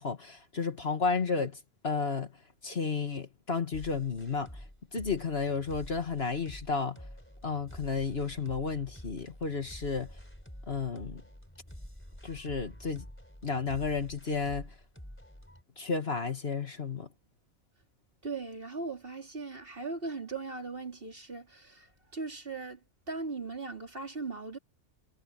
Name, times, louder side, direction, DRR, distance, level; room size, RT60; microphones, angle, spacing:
voice 1, 0.0-1.6 1.8-2.3 2.6-4.5 4.9-7.0 7.4-10.1 10.7-11.2 12.2-13.0 13.4-14.7 15.8-17.1, left 5 dB, 50° left, 1.9 m, -32 dB
sound 1, 3.7-15.6, equal, 10° left, 3.7 m, -48 dB
voice 2, 18.2-24.6, right 3 dB, 45° right, 3.4 m, -39 dB
omnidirectional pair, 1.4 m